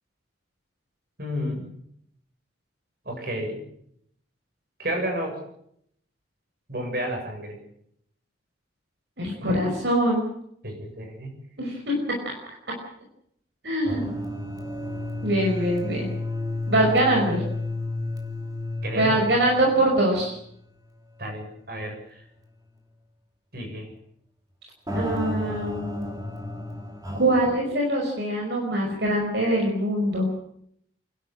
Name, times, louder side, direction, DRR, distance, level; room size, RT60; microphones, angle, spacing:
voice 1, 1.2-1.7 3.1-3.6 4.8-5.4 6.7-7.6 10.6-11.3 18.8-19.2 21.2-22.2 23.5-23.9, equal, 55° right, 3 dB, 7.6 m, -31 dB
voice 2, 9.2-10.3 11.6-12.0 12.2-12.3 13.6-14.1 15.2-16.1 16.7-17.4 18.9-20.4 24.9-26.1 27.2-30.3, right 1 dB, 75° right, -1 dB, 5.4 m, -23 dB
sound 1, 13.8-20.4 20.7-20.8 21.4-21.5 24.9-27.4, left 2 dB, 20° right, 3.1 m, -32 dB
29.0 x 12.0 x 8.8 m, 0.71 s
head